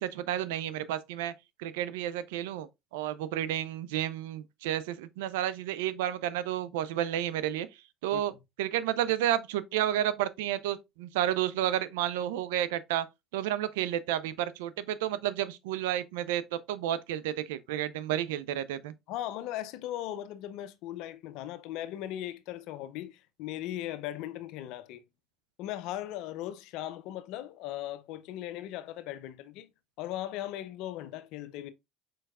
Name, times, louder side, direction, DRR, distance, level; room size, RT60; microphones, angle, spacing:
voice 1, 0.0-1.3 1.6-7.7 8.0-8.3 8.6-13.1 13.3-18.9, right 12 dB, 80° right, 0.5 m, -31 dB
voice 2, 19.1-25.0 25.6-29.7 30.0-31.7, left 13 dB, 70° left, 0.5 m, -38 dB
4.7 x 4.6 x 2.4 m
hypercardioid pair, 75°, 0 cm